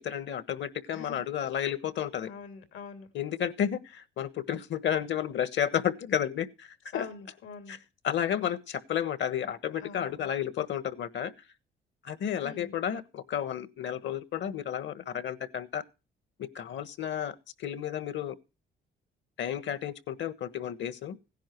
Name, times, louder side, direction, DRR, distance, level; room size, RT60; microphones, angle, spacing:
voice 1, 0.0-2.3 3.1-7.1 7.7-7.8 8.0-11.3 12.0-15.8 16.4-18.4 19.4-21.2, left 9 dB, 70° left, 1.4 m, -32 dB
voice 2, 0.9-1.2 2.2-3.1 6.9-7.8 9.8-10.3 12.4-12.7, left 5 dB, 85° left, 2.8 m, -44 dB
16.5 x 10.5 x 4.6 m
cardioid pair, 90°, 20 cm